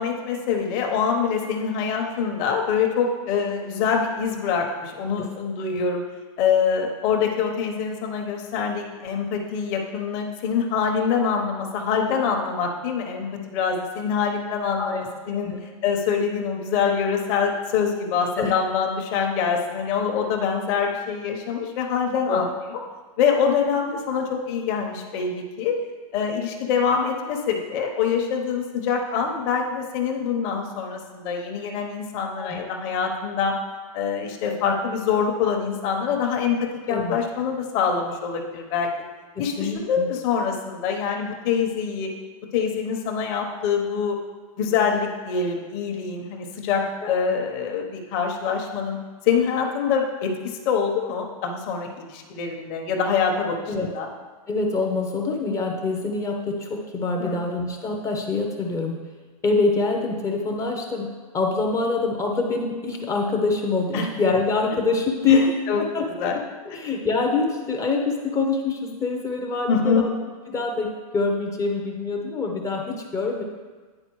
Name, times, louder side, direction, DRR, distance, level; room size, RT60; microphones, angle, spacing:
voice 1, 0.0-6.0 6.4-22.8 23.2-25.8 26.1-33.6 33.9-38.9 39.4-42.1 42.5-44.2 44.6-49.0 49.2-54.1 57.2-57.4 63.9-64.1 65.3-65.8 66.1-66.4 66.7-66.8 69.7-70.0, left 6 dB, 40° left, 2 dB, 0.9 m, -25 dB
voice 2, 32.4-32.7 36.9-37.2 39.4-40.1 47.0-47.1 53.7-53.9 54.5-59.0 59.4-61.1 61.3-65.5 65.8-66.1 66.3-66.4 66.7-70.1 70.5-73.4, left 3 dB, 15° left, 2 dB, 0.6 m, -25 dB
9.7 x 4.0 x 3.1 m, 1.4 s
hypercardioid pair, 130°, 19 cm